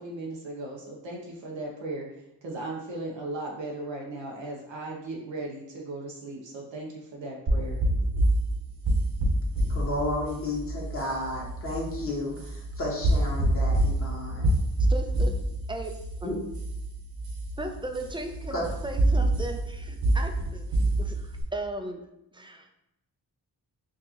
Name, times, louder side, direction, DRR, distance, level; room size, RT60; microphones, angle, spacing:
voice 1, 0.0-2.1 2.4-7.8, right 2 dB, 85° right, -2 dB, 0.8 m, -37 dB
sound 1, 7.5-21.4, right 1 dB, 70° right, 1.2 m, -27 dB
voice 2, 9.7-14.5 16.2-16.4 18.5-18.7, left 1 dB, 30° left, -4 dB, 1.3 m, -32 dB
voice 3, 14.9-15.4 15.7-15.9 16.2-16.4 17.6-22.0 22.3-22.7, right 1 dB, 10° right, 4 dB, 0.5 m, -36 dB
4.5 x 2.5 x 2.8 m, 0.85 s
cardioid pair, 45°, 44 cm